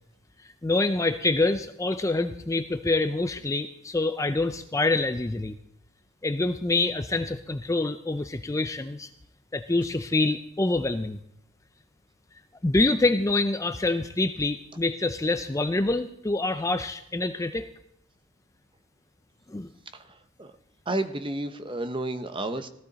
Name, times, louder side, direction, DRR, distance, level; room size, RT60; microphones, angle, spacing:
voice 1, 0.4-5.6 6.2-9.1 9.5-11.2 12.6-17.7 19.5-19.7, left 2 dB, 15° left, 9 dB, 0.4 m, -26 dB
voice 2, 19.9-20.5 20.9-22.7, right 2 dB, 25° right, 9 dB, 0.8 m, -31 dB
16.5 x 14.0 x 4.0 m, 0.76 s
head